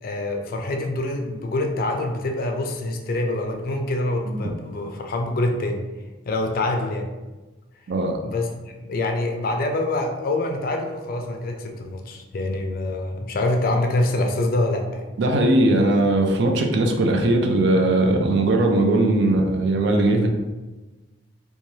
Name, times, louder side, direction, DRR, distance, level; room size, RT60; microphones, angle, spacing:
voice 1, 0.0-5.8 6.3-7.1 8.2-15.1, left 2 dB, 50° left, 3 dB, 0.4 m, -25 dB
voice 2, 7.9-8.2 15.2-20.3, right 2 dB, 60° right, 2 dB, 0.4 m, -19 dB
3.0 x 2.3 x 2.7 m, 1.1 s
head